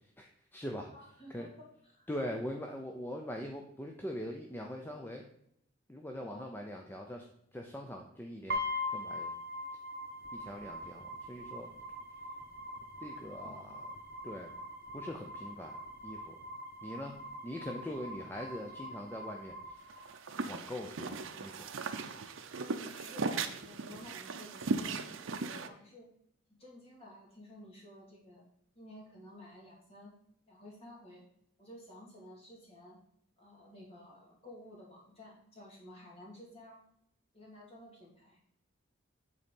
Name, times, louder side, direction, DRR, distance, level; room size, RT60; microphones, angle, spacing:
voice 1, 0.2-0.9 1.3-1.5 2.1-5.2 5.9-7.3 7.5-8.6 8.9-9.3 10.3-11.7 13.0-13.8 14.2-14.5 14.9-15.8 16.0-16.4 16.8-17.1 17.4-19.8 20.5-21.7, equal, 10° left, 2 dB, 0.5 m, -42 dB
voice 2, 0.9-2.1 6.2-6.5 13.4-13.7 22.6-26.1 26.6-28.4 28.8-30.1 30.5-31.2 31.6-33.0 33.4-36.8 37.3-38.4, left 1 dB, 30° left, -3 dB, 2.3 m, -52 dB
sound 1, 8.5-20.5, left 1 dB, 45° right, 1.3 m, -42 dB
sound 2, 19.9-25.7, right 4 dB, 70° right, 0.6 m, -38 dB
8.0 x 4.2 x 5.2 m, 0.73 s
head